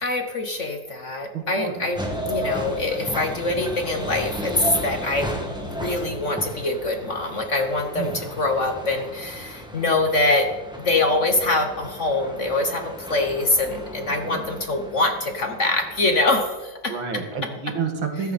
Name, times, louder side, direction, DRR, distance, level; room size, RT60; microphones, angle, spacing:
voice 1, 0.0-2.0 2.2-5.3 5.7-10.5 10.8-17.0, left 2 dB, 45° left, 5 dB, 1.2 m, -24 dB
voice 2, 1.3-1.9 7.9-8.3 14.2-14.5 16.9-18.3, right 5 dB, 75° right, 4 dB, 2.6 m, -29 dB
sound 1, 1.9-16.5, equal, ahead, 1.7 m, -34 dB
14.5 x 13.0 x 4.2 m, 1.2 s
omnidirectional pair, 2.2 m